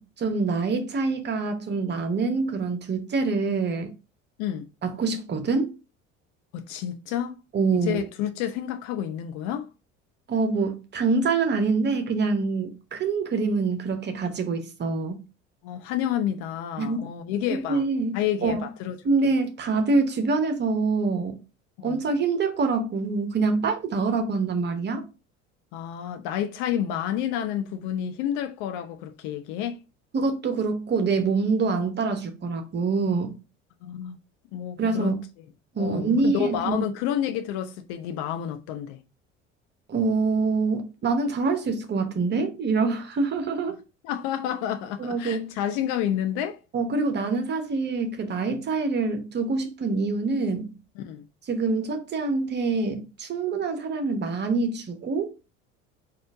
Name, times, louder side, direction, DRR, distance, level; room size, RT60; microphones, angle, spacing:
voice 1, 0.0-3.9 4.8-5.7 7.5-8.0 10.3-15.2 16.8-17.0 17.5-18.6 19.0-21.4 21.8-25.0 30.1-33.3 34.8-35.2 35.7-36.9 39.9-43.8 45.0-45.6 46.7-50.7 51.5-55.3, right 4 dB, 30° right, 0.9 m, -25 dB
voice 2, 6.5-7.3 7.7-9.7 15.6-17.8 18.1-19.0 21.8-22.0 25.7-29.8 33.8-34.2 34.5-35.1 35.8-39.0 44.0-46.6 51.0-51.3, left 10 dB, 50° left, 0.6 m, -29 dB
4.2 x 2.5 x 4.6 m
figure-of-eight pair, 60°, 37 cm